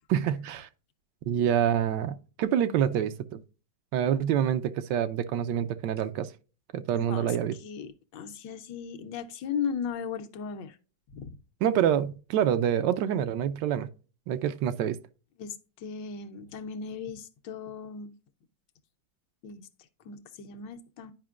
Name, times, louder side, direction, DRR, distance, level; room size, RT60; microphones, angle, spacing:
voice 1, 0.1-0.7 1.3-3.4 3.9-6.3 6.7-7.5 11.6-13.9 14.3-15.0, right 9 dB, 85° right, 1.3 m, -26 dB
voice 2, 6.9-10.8 11.2-11.3 15.4-18.2 19.4-19.7 20.0-21.1, left 6 dB, 80° left, 1.5 m, -37 dB
10.5 x 5.0 x 2.4 m
omnidirectional pair, 1.9 m